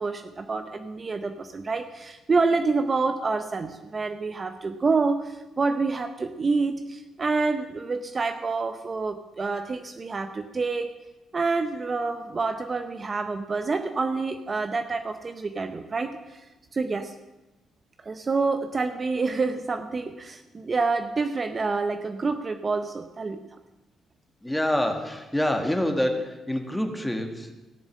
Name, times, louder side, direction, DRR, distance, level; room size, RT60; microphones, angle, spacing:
voice 1, 0.0-10.9 11.3-16.4 16.7-17.1 18.0-23.4, right 4 dB, 35° right, 8 dB, 0.8 m, -27 dB
voice 2, 24.4-27.5, left 1 dB, 5° left, 4 dB, 1.8 m, -26 dB
15.5 x 7.0 x 7.5 m, 1.1 s
cardioid pair, 90°, 0 cm